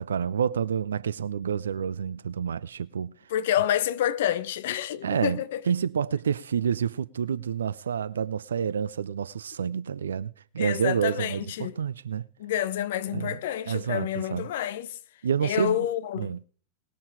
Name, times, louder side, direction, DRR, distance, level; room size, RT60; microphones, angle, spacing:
voice 1, 0.0-3.1 5.0-5.4 5.7-12.2 13.1-13.4 13.7-14.4 15.2-15.9 16.2-16.4, right 7 dB, 70° right, 0.5 m, -28 dB
voice 2, 3.3-5.6 10.6-11.7 12.4-15.0 15.4-16.4, left 11 dB, 55° left, 0.8 m, -28 dB
20.0 x 7.0 x 4.7 m
figure-of-eight pair, 90°, 0 cm